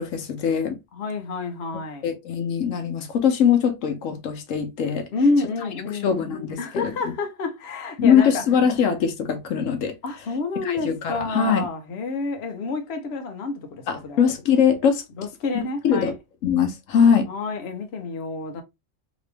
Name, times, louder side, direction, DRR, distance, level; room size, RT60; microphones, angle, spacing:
voice 1, 0.0-0.8 2.0-5.1 6.0-6.9 8.0-9.9 10.6-11.7 13.9-15.0 15.5-16.1 16.4-17.3, left 7 dB, 85° left, 1.1 m, -21 dB
voice 2, 0.9-2.1 5.1-8.4 10.0-14.3 15.2-16.1 17.3-18.6, left 3 dB, 60° left, 1.0 m, -28 dB
3.0 x 2.9 x 3.2 m
omnidirectional pair, 1.3 m